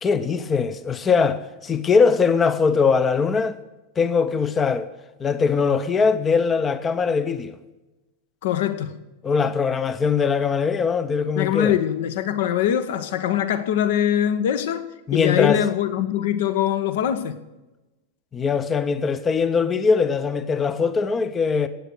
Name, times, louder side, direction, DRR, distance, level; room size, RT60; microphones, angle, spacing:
voice 1, 0.0-3.6 4.0-4.9 5.2-7.5 9.2-11.7 15.1-15.6 18.3-21.7, left 5 dB, 20° left, 0.8 m, -21 dB
voice 2, 8.4-8.9 11.4-14.8 15.1-17.4, left 10 dB, 55° left, 1.1 m, -22 dB
16.0 x 8.9 x 6.4 m
figure-of-eight pair, 90°, 0 cm